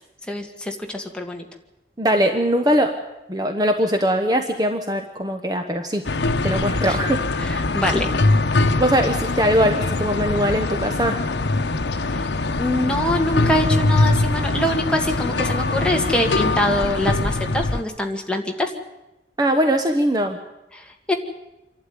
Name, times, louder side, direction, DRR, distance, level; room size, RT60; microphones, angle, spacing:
voice 1, 0.3-1.4 6.8-7.0 7.4-8.1 12.1-12.2 12.6-18.7 20.7-21.1, left 1 dB, 5° left, 2 dB, 2.0 m, -24 dB
voice 2, 2.0-3.0 3.3-6.0 6.4-7.3 8.8-11.2 19.4-20.4, equal, 20° right, 5 dB, 1.1 m, -21 dB
sound 1, 6.0-17.8, left 2 dB, 80° left, 0.9 m, -22 dB
27.0 x 12.0 x 9.6 m, 0.97 s
head